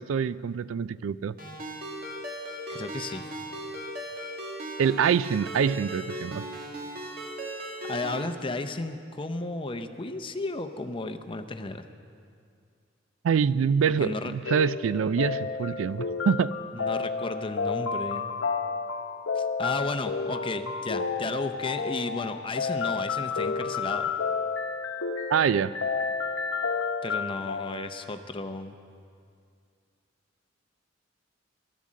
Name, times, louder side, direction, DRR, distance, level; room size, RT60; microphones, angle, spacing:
voice 1, 0.0-1.4 4.8-6.4 13.2-16.6 25.3-25.7, right 7 dB, 90° right, 18 dB, 0.3 m, -25 dB
Ringtone, 1.4-8.3, right 1 dB, 50° right, 1.9 m, -37 dB
voice 2, 2.7-3.3 7.9-11.9 14.0-14.3 16.7-18.3 19.3-24.1 27.0-28.8, left 3 dB, 25° left, 8 dB, 0.6 m, -34 dB
sound 1, 14.5-27.8, left 5 dB, 80° left, 0.8 m, -31 dB
13.5 x 12.0 x 7.4 m, 2.3 s
head